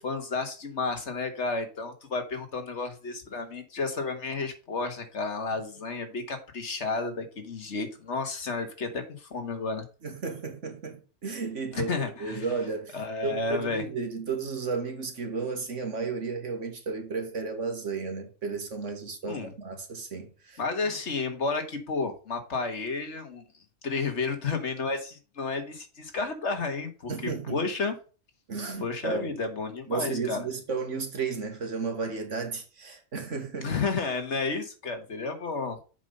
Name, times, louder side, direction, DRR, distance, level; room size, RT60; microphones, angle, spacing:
voice 1, 0.0-9.8 11.7-12.5 12.9-13.8 19.2-19.5 20.6-23.4 23.8-27.9 28.8-30.5 33.6-35.8, left 4 dB, 65° left, 1.8 m, -32 dB
voice 2, 10.0-11.9 12.2-20.6 27.1-27.6 28.5-29.3 29.9-33.7, right 4 dB, 70° right, 2.1 m, -33 dB
7.3 x 5.5 x 5.1 m
omnidirectional pair, 1.3 m